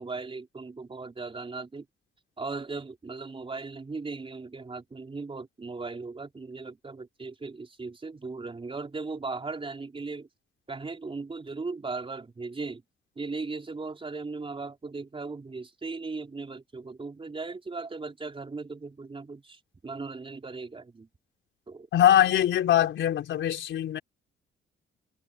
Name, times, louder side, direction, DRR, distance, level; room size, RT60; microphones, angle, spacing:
voice 1, 0.0-1.9 2.4-10.3 10.7-12.8 13.2-21.1 21.7-21.9, right 3 dB, 25° right, 4.5 m, -37 dB
voice 2, 21.9-24.0, left 11 dB, 70° left, 4.9 m, -22 dB
cardioid pair, 90°, 20 cm